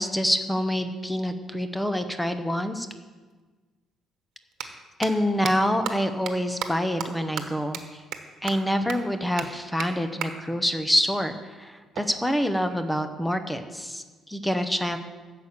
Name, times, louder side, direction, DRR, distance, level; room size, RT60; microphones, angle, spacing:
voice 1, 0.0-2.9 4.6-8.0 8.4-15.0, equal, 5° left, 8 dB, 0.8 m, -26 dB
sound 1, 3.3-3.4 4.4-4.6 5.0-5.1 5.4-5.5 5.8-5.9 6.3-6.4 6.6-6.7 7.0-7.1 7.4-7.5 7.7-7.8 8.1-8.2 8.5-8.6 8.9-9.0 9.4-9.5 9.8-9.9 10.2-10.3 11.9-13.0, right 9 dB, 60° right, 1.2 m, -33 dB
13.0 x 6.6 x 8.4 m, 1.4 s
cardioid pair, 170°, 0 cm